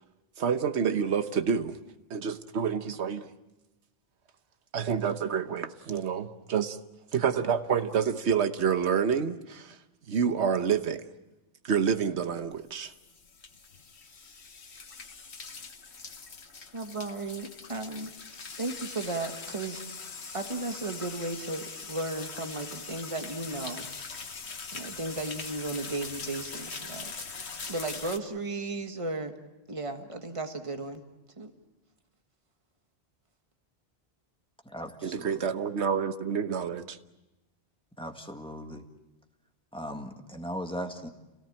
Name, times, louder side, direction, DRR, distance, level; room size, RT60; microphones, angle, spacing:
voice 1, 0.4-1.8 2.1-3.3 4.7-6.8 7.1-9.8 10.1-11.0 11.6-12.9 35.0-37.0, right 7 dB, 70° right, 1.3 m, -28 dB
sound 1, 12.5-28.2, left 4 dB, 70° left, 1.6 m, -42 dB
voice 2, 16.7-18.1 18.6-23.9 24.7-27.1 27.7-29.4 29.7-31.0 31.4-31.5, right 2 dB, 30° right, 1.7 m, -35 dB
voice 3, 34.7-35.4 38.0-38.9 39.7-41.1, equal, 5° left, 1.9 m, -38 dB
28.0 x 18.0 x 8.8 m
omnidirectional pair, 1.2 m